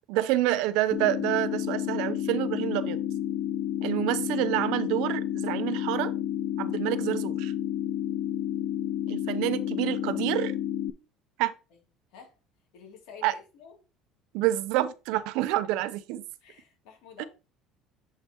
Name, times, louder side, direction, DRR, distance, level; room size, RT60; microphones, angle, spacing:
voice 1, 0.1-3.0 3.8-6.1 6.6-7.5 9.1-10.5 11.4-11.5 13.2-13.3 14.3-16.2 17.2-17.3, right 15 dB, 75° right, 0.5 m, -28 dB
sound 1, 0.9-10.9, left 11 dB, 45° left, 0.3 m, -30 dB
voice 2, 12.7-13.7 16.4-17.3, left 5 dB, 80° left, 2.5 m, -49 dB
7.3 x 5.4 x 2.9 m
cardioid pair, 160°, 0 cm